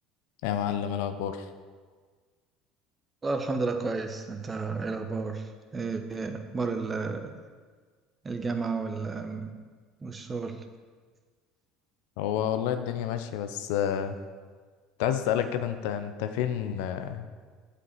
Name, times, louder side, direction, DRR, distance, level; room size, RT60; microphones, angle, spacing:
voice 1, 0.4-1.5 12.2-14.2 15.0-17.3, left 9 dB, 70° left, 9 dB, 0.6 m, -29 dB
voice 2, 3.2-7.4 8.2-9.6 10.0-10.6, right 4 dB, 25° right, 6 dB, 1.1 m, -32 dB
8.4 x 5.1 x 7.0 m, 1.5 s
hypercardioid pair, 70°, 0 cm